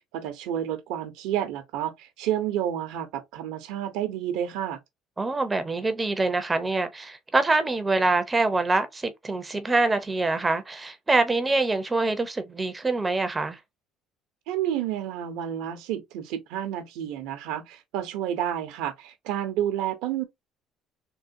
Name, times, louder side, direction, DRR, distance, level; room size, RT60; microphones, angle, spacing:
voice 1, 0.1-4.8 14.5-20.2, right 11 dB, 80° right, 0.7 m, -30 dB
voice 2, 5.2-13.6, right 3 dB, 20° right, 0.6 m, -25 dB
3.7 x 2.2 x 2.6 m
cardioid pair, 105°, 0 cm